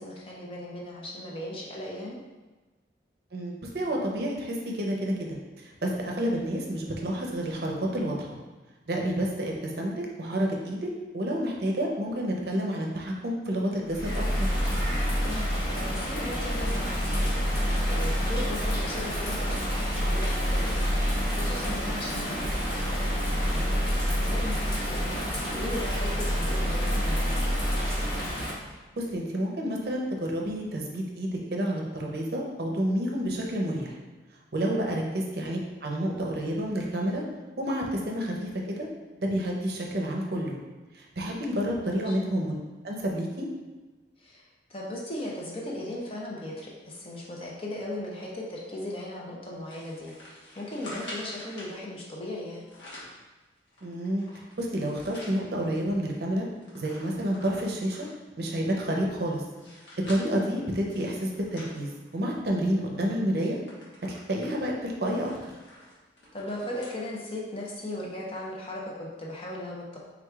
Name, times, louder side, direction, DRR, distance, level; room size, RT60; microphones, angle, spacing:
voice 1, 0.0-2.2 15.2-21.0 21.4-27.4 34.7-35.0 41.9-42.2 44.2-52.6 62.7-63.3 66.3-70.0, left 1 dB, 30° left, -4 dB, 0.7 m, -38 dB
voice 2, 3.3-8.4 8.9-10.9 11.1-14.2 29.0-33.9 34.5-37.2 37.6-38.9 39.2-40.6 40.9-42.6 42.8-43.5 53.8-54.3 54.6-56.5 56.7-58.1 58.4-59.4 60.1-63.6 64.1-65.3, equal, 60° right, -1 dB, 0.6 m, -29 dB
Bird vocalization bird call bird song / Rain, 13.9-28.5, equal, 55° left, 1.4 m, -27 dB
sound 1, 49.7-51.8 52.5-53.2 53.7-55.4 55.9-56.0 56.2-58.2 58.8-62.5 62.9-63.1 63.4-67.0 67.4-67.5 68.4-68.5, left 1 dB, 80° left, 1.3 m, -47 dB
4.7 x 3.6 x 2.3 m, 1.2 s
head